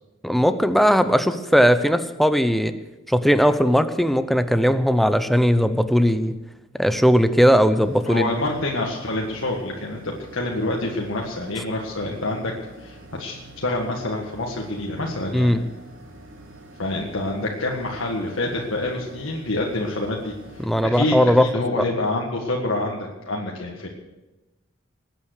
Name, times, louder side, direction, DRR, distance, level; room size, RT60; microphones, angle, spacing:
voice 1, 0.2-2.7 3.1-6.3 6.8-8.3 15.3-15.7 20.6-21.4 21.8-21.9, equal, ahead, 10 dB, 0.7 m, -18 dB
sound 1, 7.8-20.8, right 1 dB, 70° right, 3.0 m, -45 dB
voice 2, 8.1-12.5 12.8-15.5 16.8-20.3 20.8-23.9, left 2 dB, 75° left, -1 dB, 1.8 m, -27 dB
20.0 x 9.0 x 6.5 m, 1.1 s
head